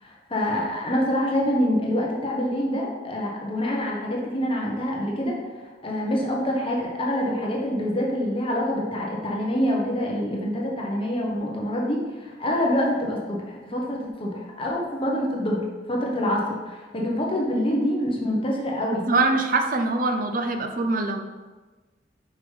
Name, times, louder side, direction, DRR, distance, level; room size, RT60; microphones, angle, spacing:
voice 1, 0.0-5.3 5.8-19.1, equal, 30° left, -2 dB, 1.0 m, -26 dB
voice 2, 19.1-21.2, right 3 dB, 45° right, 6 dB, 0.6 m, -23 dB
6.9 x 5.5 x 3.4 m, 1.3 s
head